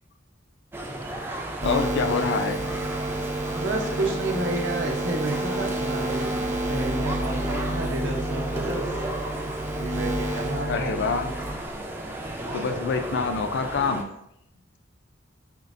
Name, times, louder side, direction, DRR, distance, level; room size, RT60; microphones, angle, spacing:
sound 1, 0.7-14.0, right 1 dB, 10° right, 0.3 m, -34 dB
voice 1, 1.6-2.6 10.7-11.3 12.5-14.1, left 5 dB, 65° left, 7 dB, 0.4 m, -26 dB
sound 2, 1.6-11.5, right 1 dB, 40° right, 0.8 m, -30 dB
voice 2, 3.5-8.9 9.8-10.9 12.4-12.9, right 2 dB, 70° right, 1 dB, 0.7 m, -31 dB
4.4 x 2.4 x 2.5 m, 0.77 s
head